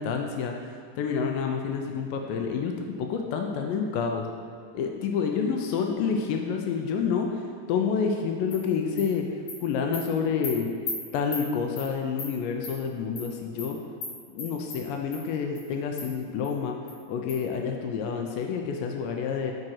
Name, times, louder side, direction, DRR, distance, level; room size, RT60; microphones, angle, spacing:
voice 1, 0.0-4.2 4.8-9.3 9.6-10.7 11.1-13.8 14.3-16.8 17.1-19.5, left 6 dB, 85° left, 3 dB, 2.3 m, -28 dB
Animal, 8.5-8.6 9.0-9.1 9.5-9.6 9.9-10.0 10.4-10.5 10.9-11.0 11.3-11.4 11.8-11.9 12.2-12.3 12.6-12.7 13.2-13.3 13.6-13.7 14.0-14.1 14.4-14.8 15.1-15.2 15.6-15.7 16.0-16.1 16.4-16.5 16.9-17.0 17.3-17.4, left 3 dB, 60° left, 2.6 m, -35 dB
5.9 x 5.3 x 5.6 m, 2.1 s
omnidirectional pair, 3.9 m